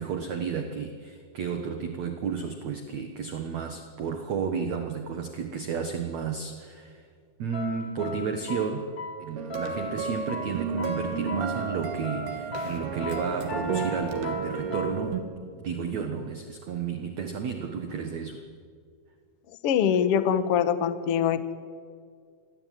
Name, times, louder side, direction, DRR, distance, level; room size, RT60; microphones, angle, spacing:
voice 1, 0.0-7.1 7.4-8.9 9.2-15.2 15.5-18.5, right 6 dB, 55° right, 6 dB, 2.3 m, -32 dB
sound 1, 7.5-14.9, left 2 dB, 40° left, 1.8 m, -38 dB
sound 2, 9.4-15.2, right 5 dB, 90° right, 4.3 m, -32 dB
voice 2, 19.6-21.5, left 8 dB, 55° left, 10 dB, 1.7 m, -23 dB
28.0 x 22.5 x 9.4 m, 2.1 s
omnidirectional pair, 4.5 m